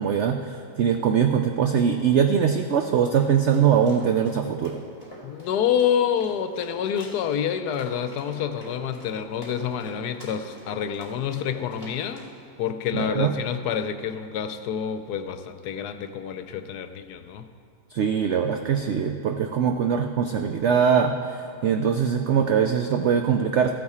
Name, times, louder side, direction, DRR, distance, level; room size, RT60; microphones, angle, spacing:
voice 1, 0.0-4.8 12.9-13.3 17.9-23.7, right 7 dB, 80° right, 6 dB, 0.6 m, -22 dB
sound 1, 3.2-12.3, equal, 10° right, 3.3 m, -45 dB
voice 2, 5.2-12.3 12.6-17.5, left 8 dB, 80° left, 9 dB, 1.1 m, -28 dB
14.5 x 8.5 x 4.3 m, 2.3 s
omnidirectional pair, 1.7 m